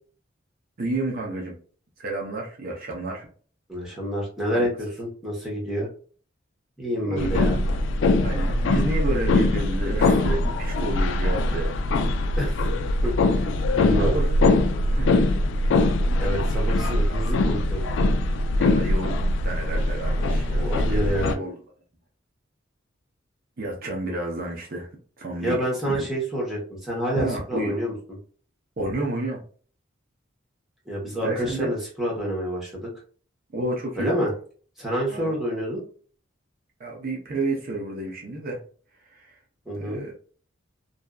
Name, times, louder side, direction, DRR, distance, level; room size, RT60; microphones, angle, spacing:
voice 1, 0.8-1.6 2.0-3.3 4.5-4.7 7.0-7.5 8.2-11.8 14.0-15.3 18.5-21.6 23.6-24.9 25.2-25.6 25.8-26.0 27.2-27.8 28.8-29.4 31.2-31.7 33.5-34.1 35.1-35.4 36.8-38.6 39.0-39.4 39.7-40.1, right 2 dB, 50° right, -1 dB, 0.6 m, -31 dB
voice 2, 3.7-5.9 6.8-7.6 12.4-12.6 13.0-13.5 13.7-14.2 16.2-17.8 20.4-21.4 25.4-27.9 30.9-32.9 33.9-34.3 34.8-35.8 39.7-40.0, equal, ahead, -5 dB, 1.0 m, -28 dB
sound 1, 7.2-21.3, left 2 dB, 65° left, 0.3 m, -22 dB
2.6 x 2.3 x 2.3 m, 0.43 s
head